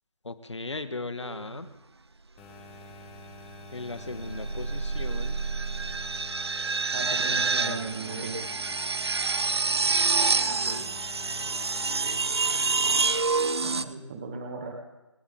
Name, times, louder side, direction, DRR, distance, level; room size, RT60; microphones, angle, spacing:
voice 1, 0.2-1.7 3.7-5.4 7.7-8.3 10.5-10.9, left 3 dB, 65° left, 10 dB, 1.7 m, -38 dB
sound 1, 1.2-1.6 3.8-13.8, right 4 dB, 55° right, 0.9 m, -27 dB
sound 2, 2.4-12.3, left 2 dB, 5° left, 1.3 m, -47 dB
voice 2, 6.9-8.4 13.6-14.7, right 3 dB, 20° right, 2 dB, 1.7 m, -36 dB
27.5 x 12.0 x 3.9 m, 1.0 s
figure-of-eight pair, 160°, 16 cm